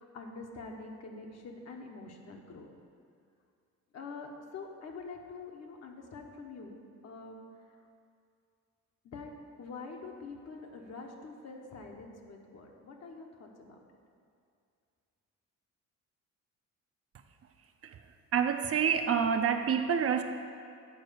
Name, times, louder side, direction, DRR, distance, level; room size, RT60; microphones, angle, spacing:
voice 1, 0.0-2.7 3.9-7.8 9.0-9.3 9.6-13.8, left 3 dB, 60° left, 2 dB, 1.1 m, -46 dB
voice 2, 18.3-20.2, right 7 dB, 50° right, 7 dB, 0.6 m, -27 dB
7.9 x 4.5 x 6.8 m, 2.4 s
cardioid pair, 90°, 30 cm